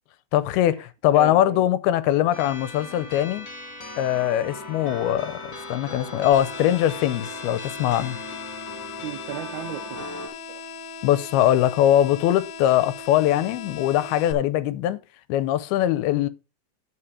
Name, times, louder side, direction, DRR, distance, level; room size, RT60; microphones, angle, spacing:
voice 1, 0.3-3.5 4.0-8.2 11.0-15.0 15.3-16.3, left 12 dB, 85° left, 2.6 m, -22 dB
voice 2, 1.1-1.7 9.0-10.6, right 9 dB, 80° right, 1.7 m, -36 dB
sound 1, 2.3-10.3, left 2 dB, 30° left, 2.4 m, -38 dB
sound 2, 6.3-14.3, left 4 dB, 70° left, 2.2 m, -39 dB
9.9 x 5.7 x 4.9 m
omnidirectional pair, 4.5 m